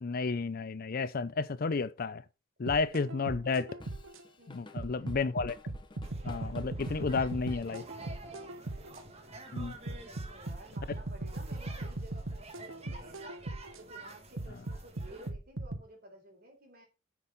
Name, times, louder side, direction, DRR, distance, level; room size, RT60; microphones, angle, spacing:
voice 1, 0.0-2.2 2.6-3.7 4.5-5.6 6.2-7.8 9.5-9.8, left 4 dB, 45° left, 0.5 m, -32 dB
sound 1, 2.7-4.2 4.8-9.0 9.6-13.8 14.4-15.8, right 2 dB, 85° right, 1.1 m, -39 dB
Drum kit / Drum, 3.8-8.6, left 2 dB, 25° left, 1.1 m, -54 dB
voice 2, 4.4-5.3 7.9-9.0 9.8-13.3 13.8-16.9, right 1 dB, 50° right, 4.2 m, -54 dB
sound 2, 6.0-15.3, right 2 dB, 30° right, 1.8 m, -50 dB
9.9 x 6.1 x 5.5 m
head